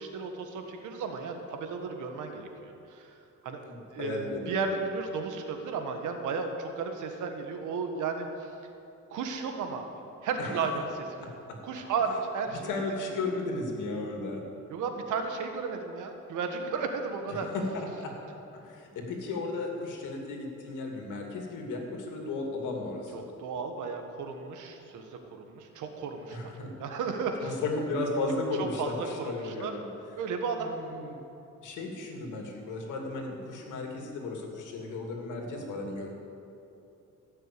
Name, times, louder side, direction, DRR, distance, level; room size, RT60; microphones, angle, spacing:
voice 1, 0.0-3.1 3.4-3.6 3.9-8.5 9.1-9.9 10.2-11.1 11.6-12.8 14.7-17.5 23.1-26.5 26.8-27.6 28.6-29.7 30.2-30.7, right 5 dB, 85° right, 5 dB, 1.5 m, -34 dB
voice 2, 3.6-4.7 10.4-10.6 11.2-11.6 12.6-14.4 17.3-18.1 18.5-23.2 26.3-26.7 27.4-29.9 30.6-31.2 31.6-36.1, left 2 dB, 85° left, 1 dB, 2.5 m, -35 dB
16.5 x 6.6 x 8.4 m, 2.9 s
cardioid pair, 90°, 30 cm